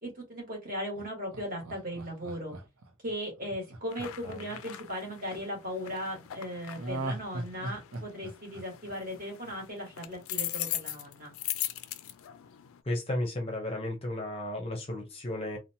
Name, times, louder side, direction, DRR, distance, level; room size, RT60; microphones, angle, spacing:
voice 1, 0.0-2.5 3.0-11.3, equal, 40° right, 1.2 m, -37 dB
Laughter, 0.9-5.2 6.8-9.8 10.1-10.2, right 2 dB, 75° right, 0.6 m, -40 dB
sound 1, 3.9-12.8, left 13 dB, 80° left, 0.3 m, -40 dB
voice 2, 4.0-4.4 12.9-15.6, left 1 dB, 25° left, 0.5 m, -34 dB
2.8 x 2.1 x 2.6 m
head